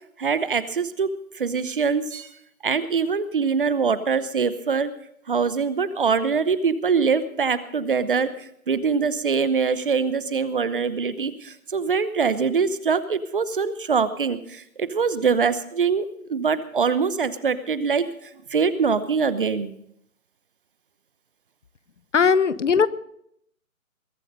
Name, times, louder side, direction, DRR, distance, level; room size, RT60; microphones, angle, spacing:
voice 1, 0.2-2.3 2.6-4.9 5.3-18.1 18.5-19.8, right 5 dB, 40° right, 15 dB, 0.9 m, -23 dB
voice 2, 22.1-22.9, left 6 dB, 55° left, 17 dB, 1.1 m, -18 dB
21.5 x 9.7 x 5.3 m, 0.71 s
figure-of-eight pair, 155°, 43 cm